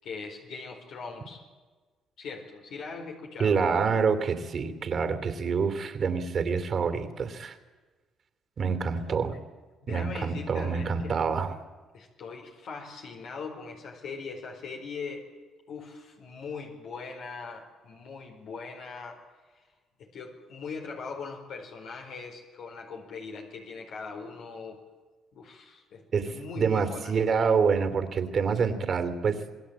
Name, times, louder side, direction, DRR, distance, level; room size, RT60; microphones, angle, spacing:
voice 1, 0.0-1.4 2.2-4.2 9.3-9.4 9.8-11.6 11.9-15.3 15.7-19.2 19.5-19.6 20.0-24.8 25.3-27.1, left 4 dB, 70° left, 1 dB, 4.5 m, -41 dB
voice 2, 3.4-7.6 8.6-9.4 9.9-11.5 26.1-29.5, right 5 dB, 50° right, 10 dB, 2.9 m, -27 dB
27.0 x 20.5 x 8.8 m, 1.3 s
cardioid pair, 80°, 0 cm